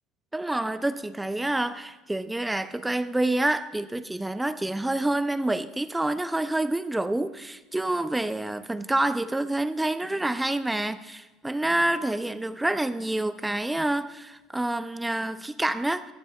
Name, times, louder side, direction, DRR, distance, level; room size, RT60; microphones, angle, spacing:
voice 1, 0.3-16.1, right 1 dB, 5° right, 0.3 m, -27 dB
14.5 x 14.0 x 2.2 m
cardioid pair, 150°, 0 cm